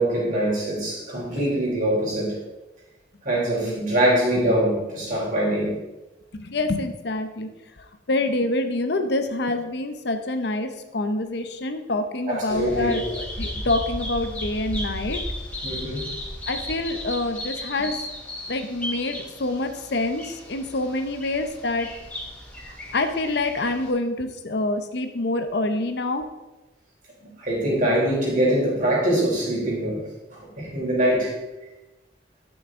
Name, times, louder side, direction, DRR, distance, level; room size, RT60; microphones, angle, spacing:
voice 1, 0.0-2.4 3.2-5.8 12.2-13.0 15.6-16.0 27.2-30.0 30.3-31.4, right 1 dB, 45° right, -4 dB, 3.6 m, -23 dB
voice 2, 6.4-7.5 8.1-15.2 16.5-17.9 18.5-21.9 22.6-26.3, left 2 dB, 65° left, 7 dB, 0.8 m, -26 dB
Bird vocalization bird call bird song, 12.5-23.9, left 1 dB, 10° left, 2.7 m, -35 dB
12.0 x 6.3 x 3.7 m, 1.0 s
head